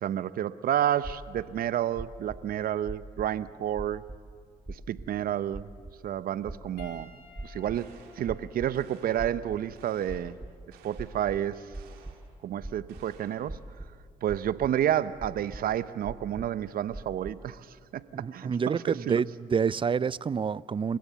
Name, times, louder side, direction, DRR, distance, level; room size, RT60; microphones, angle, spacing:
voice 1, 0.0-4.0 4.7-5.7 6.0-7.1 7.4-10.4 10.8-11.7 12.4-13.6 14.2-17.7 17.9-18.5 18.9-19.2, right 11 dB, 70° right, 0.8 m, -30 dB
sound 1, 1.0-1.5 1.9-2.4 2.8-3.4 3.8-4.2 4.7-5.1 5.5-5.9 6.4-6.9 7.3-7.9 8.2-8.7 9.2-9.7 10.1-10.5 10.9-12.1 12.6-13.0 13.5-14.0 14.3-14.7 15.2-15.6 16.0-16.6 16.9-17.3, right 2 dB, 15° right, 1.8 m, -40 dB
Piano, 6.8-11.4 12.4-12.6 14.5-14.6, left 5 dB, 85° left, 3.2 m, -57 dB
sound 2, 7.7-8.4 8.7-9.4 9.7-10.4 10.7-11.3 11.7-12.3 12.9-13.5, right 7 dB, 90° right, 2.2 m, -57 dB
voice 2, 18.1-21.0, right 6 dB, 35° right, 0.5 m, -28 dB
29.0 x 16.5 x 7.0 m
supercardioid pair, 55°, 16 cm